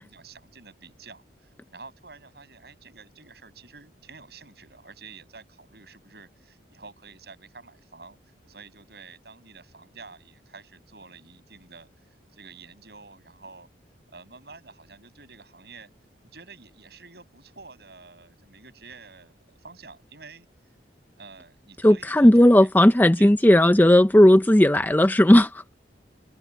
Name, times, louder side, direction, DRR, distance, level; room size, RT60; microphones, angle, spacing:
voice 1, 0.0-8.2 8.5-11.9 12.3-13.7 14.1-15.9 16.2-20.5 21.2-23.6, right 4 dB, 60° right, 6.2 m, -48 dB
voice 2, 21.8-25.6, left 1 dB, 10° left, 0.5 m, -15 dB
head